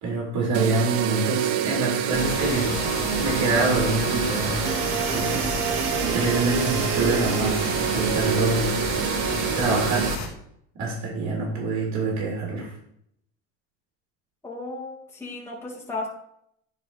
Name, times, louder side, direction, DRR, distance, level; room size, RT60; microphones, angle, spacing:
voice 1, 0.0-2.8 3.2-4.6 5.1-5.7 6.1-8.7 9.5-10.1 10.8-12.7, right 3 dB, 55° right, -3 dB, 3.7 m, -26 dB
sound 1, 0.5-10.2, right 10 dB, 75° right, 0.9 m, -26 dB
sound 2, 2.1-10.3, left 5 dB, 50° left, 2.1 m, -31 dB
voice 2, 14.4-16.1, left 2 dB, 5° left, -5 dB, 2.2 m, -35 dB
10.5 x 4.2 x 5.0 m, 0.70 s
supercardioid pair, 95°, 34 cm